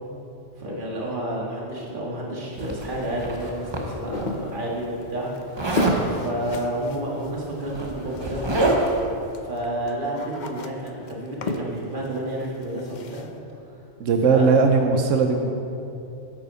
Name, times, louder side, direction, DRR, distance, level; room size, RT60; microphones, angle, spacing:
voice 1, 0.6-5.3 5.6-8.5 9.4-13.3 14.3-14.5, right 1 dB, 45° right, -3 dB, 2.0 m, -30 dB
Zipper (clothing), 2.6-4.2 5.6-6.0 7.2-7.3 7.6-9.1, right 2 dB, 25° right, 0.9 m, -26 dB
sound 1, 4.1-9.0 9.3-13.3, left 3 dB, 50° left, 0.6 m, -35 dB
voice 2, 14.0-15.5, right 4 dB, 90° right, 4 dB, 1.1 m, -19 dB
8.8 x 8.3 x 5.5 m, 2.7 s
omnidirectional pair, 1.3 m